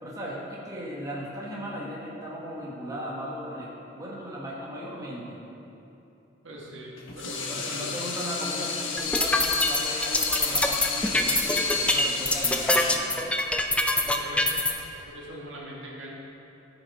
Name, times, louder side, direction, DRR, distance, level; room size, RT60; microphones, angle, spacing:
voice 1, 0.0-5.4 7.5-13.1, equal, 20° right, -5 dB, 1.6 m, -36 dB
voice 2, 6.4-7.9 14.0-16.1, right 1 dB, 80° right, -3 dB, 1.9 m, -42 dB
Water tap faucet / Sink (filling or washing), 7.0-15.0, left 5 dB, 90° left, 1.3 m, -32 dB
sound 1, 9.0-14.7, left 1 dB, 5° left, 0.5 m, -24 dB
14.0 x 7.2 x 4.3 m, 2.8 s
head